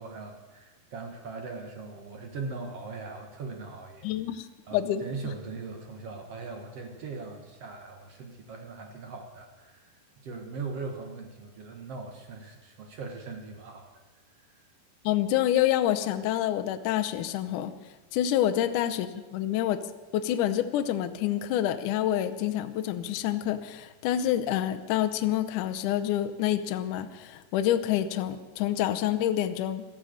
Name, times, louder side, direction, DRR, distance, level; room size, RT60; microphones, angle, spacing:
voice 1, 0.0-4.1 4.7-13.9 14.4-14.7, right 4 dB, 65° right, 3 dB, 1.6 m, -40 dB
voice 2, 4.0-4.5 4.7-5.0 15.0-17.7 18.1-19.8 20.1-29.8, left 11 dB, 80° left, 8 dB, 1.8 m, -27 dB
16.5 x 13.0 x 6.6 m, 1.2 s
omnidirectional pair, 4.7 m